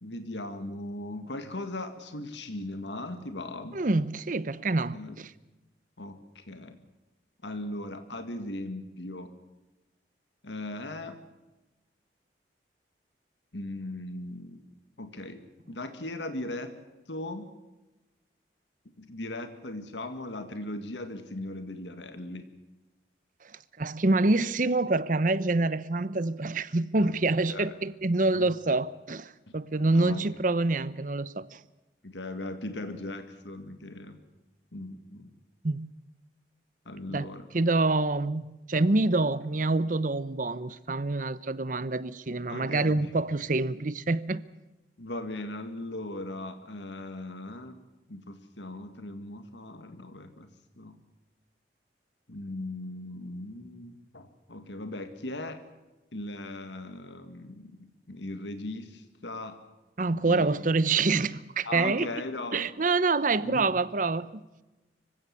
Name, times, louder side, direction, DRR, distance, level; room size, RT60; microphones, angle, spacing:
voice 1, 0.0-3.8 4.9-5.2 6.0-6.8 7.4-9.3 10.4-11.2 13.5-14.6 15.0-15.4 15.7-16.7 17.1-17.5 19.0-22.5 27.0-27.1 27.5-27.7 28.3-28.5 29.5-29.6 29.9-30.3 32.0-34.2 34.7-35.3 36.9-37.4 42.5-43.1 45.0-47.8 48.1-50.5 50.8-51.0 52.3-55.6 56.1-59.6 60.1-60.5 61.6-62.7 63.4-63.7, left 2 dB, 85° left, 2.0 m, -38 dB
voice 2, 3.7-5.3 23.8-31.6 35.6-35.9 37.1-37.2 37.5-44.4 60.0-62.1 62.5-64.4, right 3 dB, 50° right, 0.8 m, -26 dB
25.5 x 16.0 x 8.3 m
head